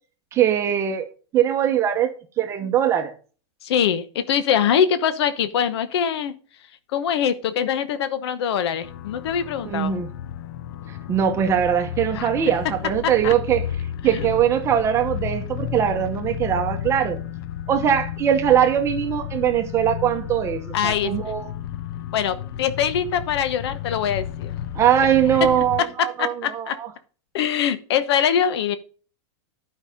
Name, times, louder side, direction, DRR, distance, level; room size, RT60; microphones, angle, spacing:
voice 1, 0.3-1.1 1.3-2.1 2.4-3.1 9.6-10.1 11.1-13.7 14.0-17.2 17.7-21.5 24.7-26.9, right 9 dB, 20° right, 0.9 m, -21 dB
voice 2, 3.6-6.3 6.9-10.0 12.1-12.3 13.2-13.3 14.0-14.3 20.7-21.1 22.1-24.5 25.4-25.5 25.8-26.8 27.3-28.8, left 8 dB, 65° left, 1.0 m, -23 dB
sound 1, 8.8-25.8, left 10 dB, 50° left, 0.6 m, -33 dB
11.5 x 5.6 x 5.1 m
supercardioid pair, 165°, 15 cm